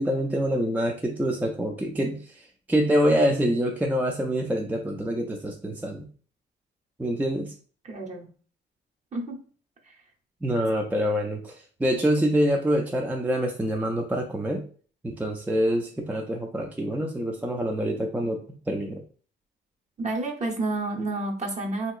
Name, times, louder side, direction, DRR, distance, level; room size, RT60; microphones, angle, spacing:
voice 1, 0.0-6.1 7.0-7.5 10.4-14.6 15.0-19.0, equal, 10° right, 2 dB, 0.4 m, -26 dB
voice 2, 7.8-8.3 9.1-9.4 10.5-10.6 20.0-21.9, right 2 dB, 35° right, 1 dB, 0.8 m, -30 dB
2.9 x 2.8 x 2.4 m, 0.42 s
cardioid pair, 90°, 20 cm